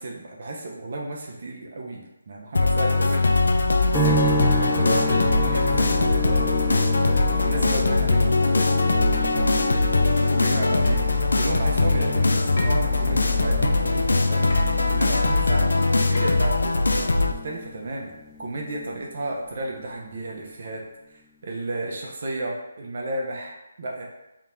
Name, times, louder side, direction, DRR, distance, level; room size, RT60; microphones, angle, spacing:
voice 1, 0.0-3.3 4.0-14.5 14.9-16.8 17.4-18.1 18.4-20.8 21.1-24.1, right 2 dB, 50° right, -1 dB, 0.7 m, -33 dB
sound 1, 2.5-17.3, left 3 dB, 85° left, 0.4 m, -21 dB
sound 2, 3.9-19.2 19.5-20.3, equal, ahead, 0.5 m, -33 dB
sound 3, 9.1-9.3 10.8-11.0 12.6-12.9 14.5-14.7 16.1-16.5, left 1 dB, 65° left, 1.2 m, -36 dB
3.7 x 2.4 x 4.4 m, 0.93 s
hypercardioid pair, 160°, 0 cm